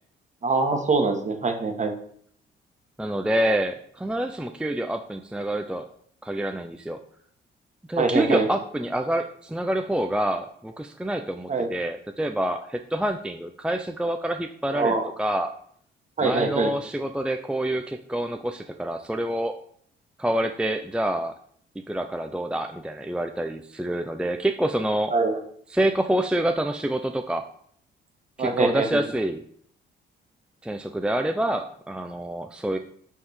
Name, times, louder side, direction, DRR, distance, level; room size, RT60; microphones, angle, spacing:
voice 1, 0.4-1.9 8.0-8.5 11.5-11.7 14.7-15.1 16.2-16.7 25.1-25.4 28.4-29.0, right 3 dB, 35° right, 4 dB, 1.4 m, -23 dB
voice 2, 3.0-5.9 6.2-7.0 7.9-15.5 16.2-19.5 20.2-21.3 21.8-25.2 25.7-27.4 28.4-29.4 30.6-32.8, right 1 dB, 5° right, 6 dB, 0.5 m, -27 dB
6.9 x 3.7 x 6.4 m, 0.63 s
cardioid pair, 90°, 20 cm